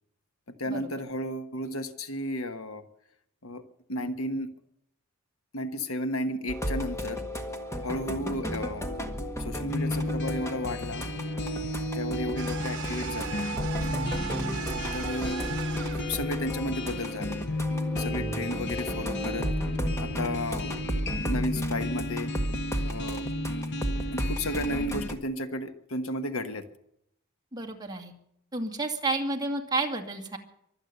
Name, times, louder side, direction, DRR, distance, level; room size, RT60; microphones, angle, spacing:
voice 1, 0.6-2.8 3.4-3.6 3.9-4.5 5.5-7.2 7.8-8.9 9.4-11.0 11.9-13.4 14.9-15.5 15.9-17.4 18.0-19.5 20.0-20.8 21.2-22.3 22.8-23.3 24.1-26.7, left 1 dB, 75° left, 8 dB, 1.4 m, -33 dB
sound 1, 6.5-25.2, equal, 15° left, 1.7 m, -34 dB
sound 2, 9.7-25.1, left 1 dB, 55° left, 1.3 m, -34 dB
sound 3, 12.4-16.2, right 8 dB, 55° right, 1.3 m, -38 dB
voice 2, 27.5-28.1 28.5-30.4, right 2 dB, 20° right, 3 dB, 2.2 m, -31 dB
24.0 x 8.7 x 6.7 m, 0.74 s
head